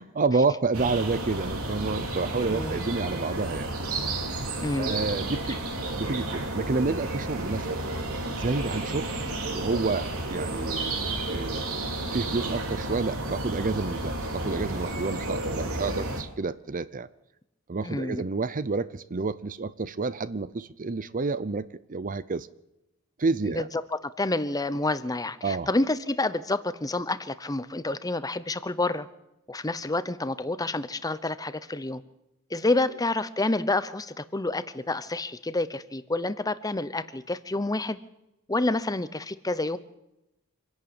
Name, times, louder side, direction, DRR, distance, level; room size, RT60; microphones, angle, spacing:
voice 1, 0.0-3.7 4.8-5.6 6.0-7.8 8.4-9.1 9.5-11.0 11.3-11.7 12.1-17.1 17.7-22.5 23.2-23.7 25.4-25.7, right 3 dB, 40° right, 0.6 m, -29 dB
sound 1, 0.7-16.2, right 2 dB, 80° right, 3.2 m, -32 dB
voice 2, 4.6-4.9 17.8-18.2 23.4-23.6 23.9-29.1 29.5-32.0 32.5-38.0 38.5-39.8, left 2 dB, 15° left, 0.8 m, -28 dB
26.0 x 11.5 x 8.9 m
head